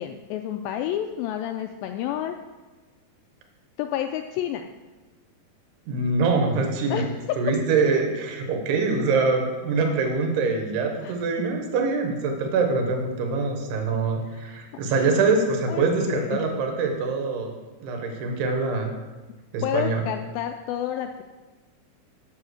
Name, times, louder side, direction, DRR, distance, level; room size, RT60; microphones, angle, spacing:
voice 1, 0.0-2.4 3.8-4.7 6.9-7.1 11.0-11.1 14.3-14.6 15.7-16.5 19.6-21.2, left 10 dB, 90° left, 6 dB, 2.0 m, -30 dB
voice 2, 5.9-7.1 7.4-17.5 17.8-19.0 19.5-20.0, right 4 dB, 85° right, 3 dB, 3.3 m, -24 dB
8.4 x 7.3 x 6.4 m, 1.2 s
omnidirectional pair, 4.6 m